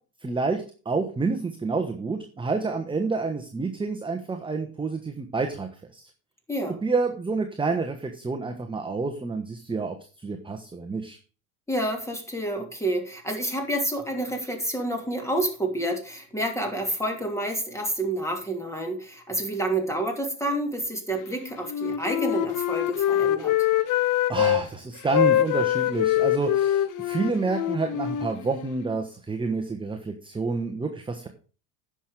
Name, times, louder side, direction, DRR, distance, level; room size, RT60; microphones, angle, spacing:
voice 1, 0.2-6.0 6.8-11.2 24.3-31.3, right 4 dB, 10° right, 4 dB, 1.2 m, -29 dB
voice 2, 11.7-23.5, right 1 dB, 5° left, 3 dB, 2.8 m, -29 dB
Wind instrument woodwind instrument, 21.6-24.6 25.1-28.9, left 12 dB, 45° left, 0.9 m, -24 dB
10.0 x 6.3 x 5.0 m, 0.37 s
hypercardioid pair, 95°, 45 cm